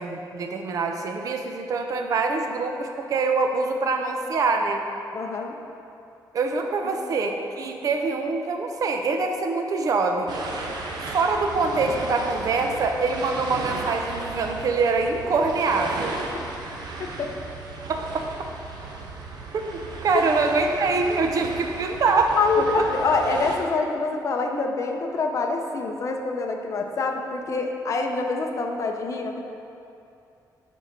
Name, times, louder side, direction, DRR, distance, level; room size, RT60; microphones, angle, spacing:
voice 1, 0.0-4.8 6.3-10.3 11.1-16.2 17.9-18.3 19.5-22.3, right 4 dB, 50° right, 4 dB, 0.6 m, -24 dB
voice 2, 5.1-5.5 6.8-6.9 17.0-17.3 22.4-29.4, left 3 dB, 45° left, 3 dB, 0.6 m, -26 dB
sound 1, 10.3-23.6, right 3 dB, 70° right, 0.9 m, -35 dB
9.0 x 4.6 x 5.2 m, 2.7 s
wide cardioid pair, 180°, 7 cm